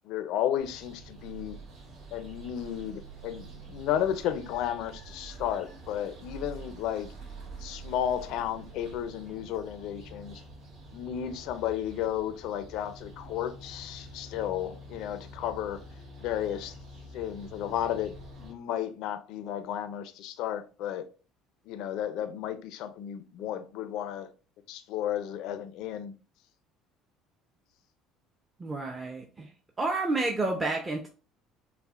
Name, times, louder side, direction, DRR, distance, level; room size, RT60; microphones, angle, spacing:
voice 1, 0.0-1.6 2.1-7.1 7.6-10.4 10.9-15.8 16.2-16.8 17.1-21.1 21.7-24.3 24.7-26.1, left 10 dB, 70° left, 0.4 m, -33 dB
sound 1, 0.6-18.5, right 2 dB, 60° right, 1.5 m, -47 dB
voice 2, 28.6-29.5 29.8-31.1, right 2 dB, 20° right, 0.6 m, -30 dB
5.6 x 2.1 x 2.3 m
supercardioid pair, 95°, 0 cm